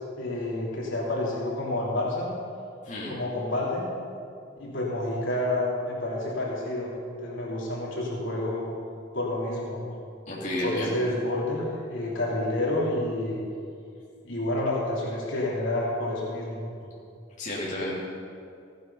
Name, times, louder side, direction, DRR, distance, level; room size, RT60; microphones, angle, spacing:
voice 1, 0.2-2.3 3.1-3.8 4.6-6.9 7.2-8.6 9.1-9.8 10.6-13.4 14.2-16.6, left 1 dB, 70° left, -5 dB, 3.3 m, -29 dB
voice 2, 10.3-10.9 17.4-17.9, left 1 dB, 40° left, -7 dB, 2.9 m, -31 dB
16.0 x 9.2 x 5.6 m, 2.4 s
head